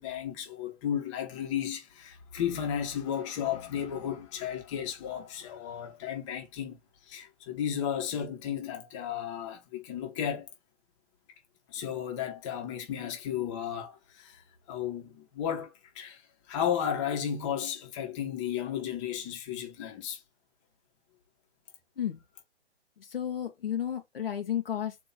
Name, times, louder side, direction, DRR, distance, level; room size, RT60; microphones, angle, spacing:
voice 1, 0.0-6.8 7.1-10.5 11.7-14.4 14.7-16.2 16.5-20.2, left 9 dB, 25° left, 1.3 m, -34 dB
voice 2, 23.0-25.0, left 10 dB, 55° left, 1.1 m, -32 dB
4.4 x 2.9 x 3.9 m
figure-of-eight pair, 135°, 34 cm